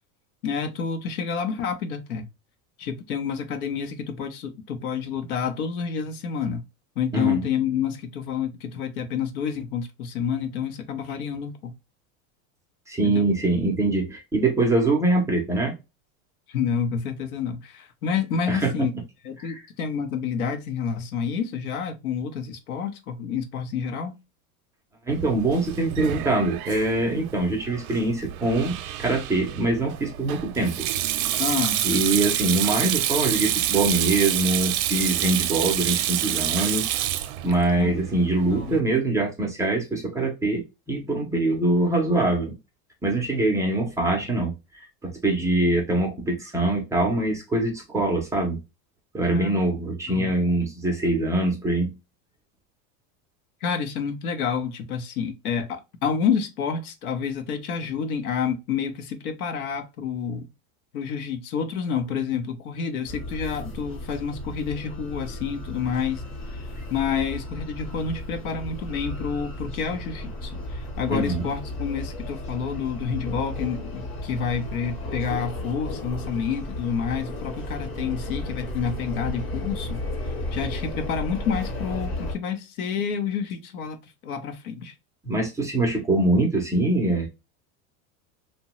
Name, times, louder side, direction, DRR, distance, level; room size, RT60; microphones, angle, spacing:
voice 1, 0.4-2.3 2.8-6.6 7.0-11.7 13.0-13.3 16.5-18.9 19.2-24.1 31.4-31.8 37.8-38.0 38.5-38.8 49.3-49.6 50.1-50.3 53.6-60.5 60.9-66.2 66.9-80.0 80.5-84.0 84.2-84.9, left 6 dB, 90° left, 0.8 m, -29 dB
voice 2, 7.1-7.5 12.9-15.7 18.5-18.7 19.4-19.5 25.1-30.9 31.8-36.9 37.4-42.5 43.0-44.5 45.0-48.6 49.1-51.9 71.1-71.5 85.2-87.3, right 2 dB, 10° right, 0.4 m, -23 dB
Sink (filling or washing), 25.1-38.8, right 12 dB, 80° right, 0.6 m, -28 dB
sound 1, 63.1-82.4, left 1 dB, 30° left, 0.9 m, -34 dB
2.8 x 2.2 x 2.9 m
supercardioid pair, 135°, 43 cm